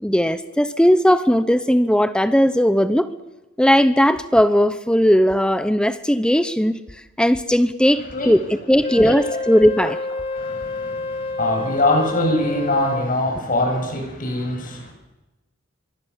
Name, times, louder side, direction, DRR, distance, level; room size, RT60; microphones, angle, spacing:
voice 1, 0.0-3.1 3.6-6.8 7.2-10.0, equal, 5° left, 11 dB, 0.8 m, -17 dB
voice 2, 7.9-8.3 9.0-9.4 10.3-14.9, left 1 dB, 45° left, 2 dB, 7.8 m, -23 dB
Wind instrument woodwind instrument, 8.8-13.2, left 3 dB, 30° left, 1.9 m, -29 dB
25.5 x 24.0 x 7.3 m, 1.0 s
head